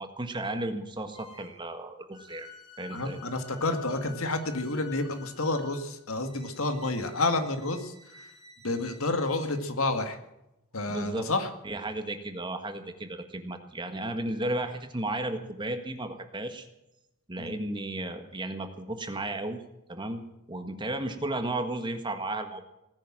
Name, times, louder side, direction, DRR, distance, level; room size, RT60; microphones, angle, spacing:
voice 1, 0.0-2.5 2.8-3.2 10.9-11.3 11.6-16.7 17.3-19.6 19.9-22.6, right 1 dB, 20° right, 7 dB, 1.7 m, -34 dB
sound 1, 1.1-1.6 2.1-9.6, left 4 dB, 30° left, 7.7 m, -51 dB
voice 2, 2.9-8.3 8.6-10.2 10.7-11.5 17.4-17.6, left 2 dB, 70° left, 7 dB, 2.0 m, -30 dB
18.5 x 10.0 x 7.5 m, 0.90 s
head